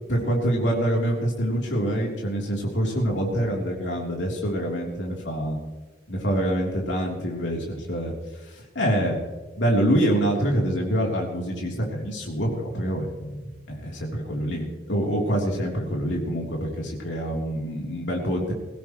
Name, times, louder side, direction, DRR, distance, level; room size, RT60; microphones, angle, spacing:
voice 1, 0.1-5.6 6.1-8.1 8.4-9.2 9.5-18.5, equal, 90° left, -2 dB, 3.4 m, -26 dB
21.5 x 17.0 x 3.1 m, 1.2 s
head